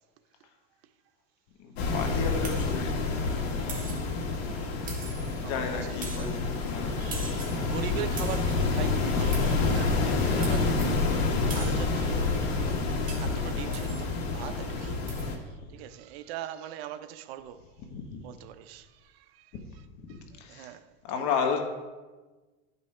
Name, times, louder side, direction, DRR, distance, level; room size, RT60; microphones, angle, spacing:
voice 1, 1.6-4.2 4.8-7.0 17.9-18.3 20.0-20.1 20.4-20.7 21.0-21.6, left 6 dB, 55° left, 1.0 m, -34 dB
sound 1, 1.8-15.4, left 3 dB, 80° left, 1.6 m, -28 dB
sound 2, 2.4-2.8 3.7-4.1 4.9-5.4 6.0-6.4 7.1-7.7 8.2-8.6 9.3-9.7 10.4-11.0 11.5-11.9 13.1-13.4 13.7-14.0 15.1-15.3, right 5 dB, 25° right, 1.4 m, -42 dB
voice 2, 5.4-5.8 6.1-6.3 7.0-11.2 11.5-12.3 12.6-12.8 13.2-15.0 15.7-17.6 18.2-19.5 20.1-20.2 20.5-20.8, right 11 dB, 75° right, 0.7 m, -41 dB
11.0 x 5.4 x 3.2 m
supercardioid pair, 145°, 30 cm